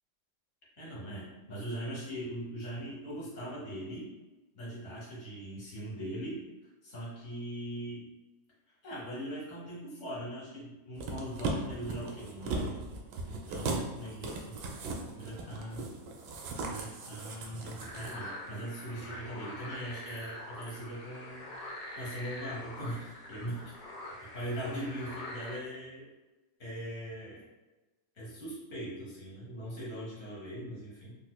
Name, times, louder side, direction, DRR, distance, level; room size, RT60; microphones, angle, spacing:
voice 1, 0.8-4.1 4.5-6.4 6.8-8.0 8.8-12.9 13.2-14.6 15.1-15.9 16.6-21.5 21.9-24.0 24.3-26.0 26.6-27.4 28.1-31.2, right 1 dB, 45° left, -6 dB, 1.4 m, -40 dB
sound 1, 11.0-18.1 18.5-18.6, right 2 dB, 85° right, 1.3 m, -38 dB
sound 2, 17.8-25.6, left 1 dB, 60° left, 1.0 m, -44 dB
4.1 x 2.6 x 2.2 m, 1.1 s
omnidirectional pair, 2.0 m